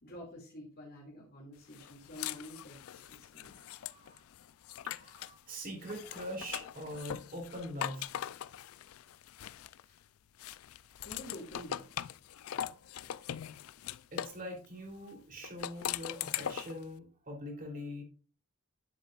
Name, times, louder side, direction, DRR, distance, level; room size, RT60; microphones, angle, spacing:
voice 1, 0.0-3.6 11.0-11.9, left 1 dB, 50° left, -3 dB, 2.3 m, -48 dB
sound 1, 1.7-5.4 5.8-10.0 10.4-14.4 15.4-16.8, left 10 dB, 80° left, 0.4 m, -41 dB
voice 2, 3.5-4.2 4.8-8.1 14.1-18.0, equal, 40° right, 1 dB, 3.2 m, -43 dB
9.9 x 8.0 x 2.4 m, 0.35 s
head